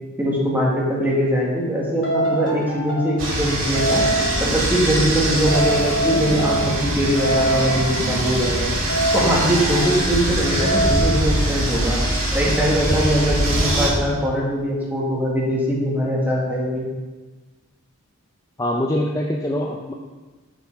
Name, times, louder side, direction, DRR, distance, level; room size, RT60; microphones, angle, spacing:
voice 1, 0.2-4.1 4.4-8.7 9.1-12.0 12.3-16.9, equal, 10° right, -4 dB, 1.7 m, -22 dB
sound 1, 1.0-1.2 2.0-3.3 3.7-4.5 5.5-6.9 7.2-8.1 8.9-10.1 10.6-11.2, right 1 dB, 60° left, 2.2 m, -24 dB
sound 2, 3.2-13.9, right 1 dB, 65° right, 2.6 m, -23 dB
voice 2, 18.6-19.9, left 1 dB, 15° left, 0 dB, 0.5 m, -23 dB
8.8 x 5.5 x 4.6 m, 1.3 s
head